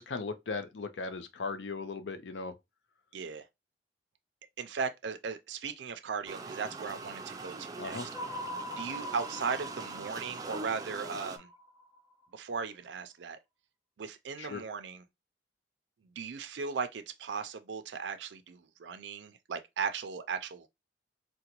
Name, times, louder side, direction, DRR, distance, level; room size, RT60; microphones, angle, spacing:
voice 1, 0.0-2.5 7.8-8.1 14.4-14.6, left 4 dB, 85° left, 0.5 m, -37 dB
voice 2, 3.1-3.5 4.6-8.0 8.7-11.5 12.3-13.4 14.0-15.0 16.0-20.7, right 5 dB, 80° right, 0.4 m, -37 dB
sound 1, 6.3-11.4, right 3 dB, 20° right, 0.4 m, -42 dB
sound 2, 8.1-12.4, equal, 20° left, 1.0 m, -43 dB
3.8 x 2.2 x 2.9 m
head